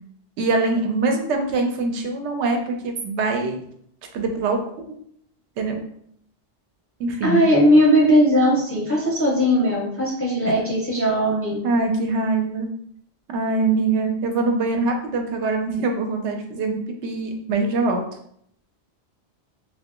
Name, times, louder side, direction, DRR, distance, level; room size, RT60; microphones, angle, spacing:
voice 1, 0.4-3.6 4.1-4.6 5.6-5.8 7.0-7.4 11.6-12.7 13.3-18.0, right 3 dB, 80° right, 4 dB, 0.9 m, -23 dB
voice 2, 7.2-11.6, equal, 15° left, -4 dB, 0.5 m, -18 dB
2.7 x 2.3 x 3.6 m, 0.68 s
omnidirectional pair, 1.2 m